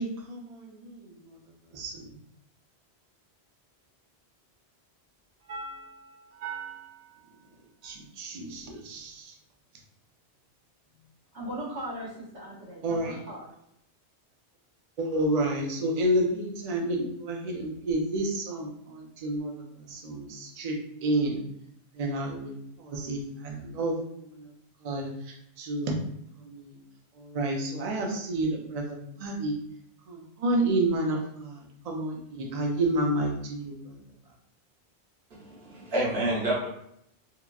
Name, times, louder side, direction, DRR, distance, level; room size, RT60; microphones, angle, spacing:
voice 1, 0.0-1.4 1.7-2.1 5.5-7.1 7.8-9.3 12.8-13.2 15.0-21.4 21.9-24.5 24.8-26.0 26.4-26.8 27.2-29.6 30.1-34.0, right 1 dB, 50° right, 0.5 m, -30 dB
voice 2, 11.3-13.6, right 1 dB, 90° right, 1.3 m, -38 dB
voice 3, 35.3-36.7, right 1 dB, 70° right, 1.1 m, -29 dB
2.9 x 2.4 x 2.3 m
omnidirectional pair, 1.1 m